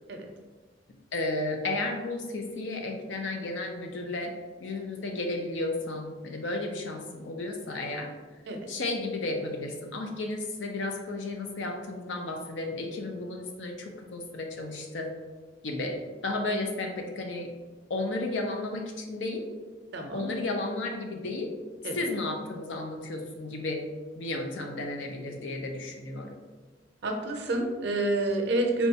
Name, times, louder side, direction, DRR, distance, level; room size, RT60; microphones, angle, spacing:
voice 1, 1.1-4.3 4.6-8.1 8.7-15.1 15.6-16.0 16.2-17.5 17.9-19.4 20.1-21.5 21.9-23.8 24.2-26.4, left 2 dB, 85° left, 2 dB, 0.6 m, -33 dB
voice 2, 19.9-20.3 21.8-22.0 27.0-28.9, right 2 dB, 70° right, 3 dB, 0.5 m, -28 dB
4.2 x 2.3 x 2.7 m, 1.3 s
head